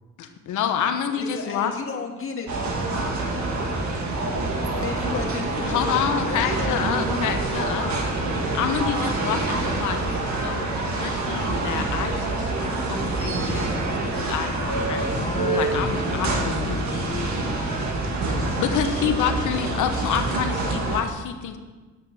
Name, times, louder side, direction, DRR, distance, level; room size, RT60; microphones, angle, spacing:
voice 1, 0.2-1.7 5.6-8.1 8.5-10.7 10.9-15.2 15.5-17.1 18.6-21.6, left 8 dB, 80° left, 7 dB, 1.2 m, -28 dB
voice 2, 1.1-2.5 4.8-6.9 7.7-8.2, left 5 dB, 45° left, 2 dB, 1.9 m, -33 dB
sound 1, 2.5-21.0, right 2 dB, 65° right, 1.9 m, -26 dB
voice 3, 15.0-18.0 18.3-18.5, left 5 dB, 25° left, 10 dB, 0.4 m, -33 dB
9.6 x 6.5 x 7.1 m, 1.3 s
cardioid pair, 90°, 30 cm